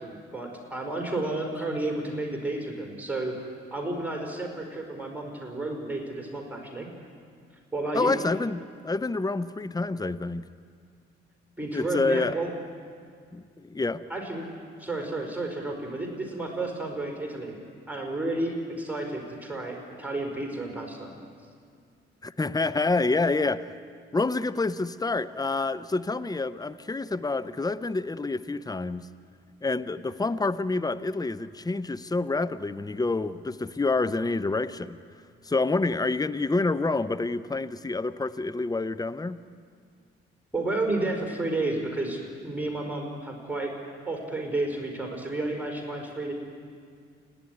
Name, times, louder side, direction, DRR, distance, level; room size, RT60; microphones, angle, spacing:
voice 1, 0.0-3.3 3.7-6.9 7.7-8.1 11.6-12.5 14.1-14.5 14.8-17.5 17.9-21.1 40.5-43.7 44.0-46.3, right 2 dB, 5° right, 1 dB, 5.0 m, -31 dB
voice 2, 7.9-10.5 11.7-12.3 13.3-14.0 22.2-23.7 24.1-29.1 29.6-35.0 35.4-39.4, left 3 dB, 15° left, 15 dB, 0.8 m, -28 dB
29.5 x 10.5 x 9.8 m, 2.2 s
hypercardioid pair, 40°, 30 cm